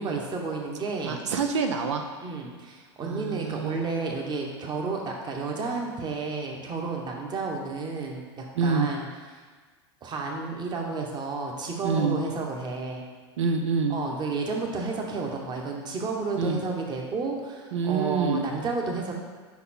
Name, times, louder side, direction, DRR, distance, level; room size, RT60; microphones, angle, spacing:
voice 1, 0.0-1.2 2.2-9.0 10.0-13.0 13.9-19.1, right 3 dB, 30° right, 0 dB, 1.1 m, -31 dB
voice 2, 1.0-2.0 3.0-3.8 8.5-8.9 11.8-12.2 13.4-14.0 16.4-16.6 17.7-18.4, right 5 dB, 85° right, 4 dB, 0.5 m, -26 dB
5.4 x 4.2 x 4.2 m, 1.4 s
hypercardioid pair, 105°, 15 cm